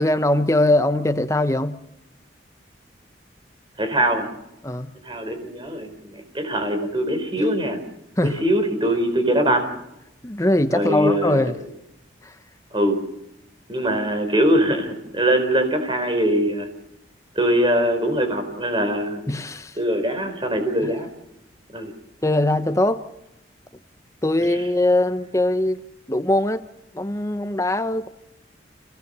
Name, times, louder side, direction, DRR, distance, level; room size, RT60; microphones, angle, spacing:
voice 1, 0.0-1.8 4.6-4.9 8.2-8.4 10.2-11.6 12.2-12.3 19.3-19.8 20.8-20.9 22.2-23.1 24.2-25.8 26.1-26.6 26.9-28.1, left 1 dB, 15° left, 0.9 m, -21 dB
voice 2, 3.8-4.3 5.0-7.8 8.2-9.7 10.7-11.5 12.7-13.0 13.7-16.7 17.4-19.2 19.8-21.1 21.7-21.9, right 1 dB, 25° right, 4.0 m, -22 dB
27.0 x 17.5 x 6.8 m
head